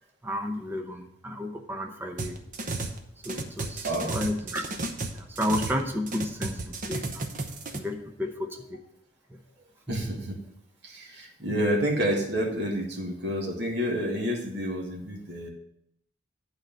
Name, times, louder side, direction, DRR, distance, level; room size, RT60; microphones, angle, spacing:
voice 1, 0.2-2.4 3.2-4.6 5.1-7.3 7.7-8.8 9.3-9.4 9.9-10.0 11.4-11.6, left 1 dB, 10° right, 3 dB, 0.8 m, -32 dB
sound 1, 2.2-3.0 3.2-5.8 6.1-7.8, right 2 dB, 40° right, 0.9 m, -33 dB
voice 2, 9.9-10.4 10.8-15.5, equal, 60° right, -1 dB, 1.9 m, -29 dB
9.2 x 4.8 x 7.4 m, 0.74 s
head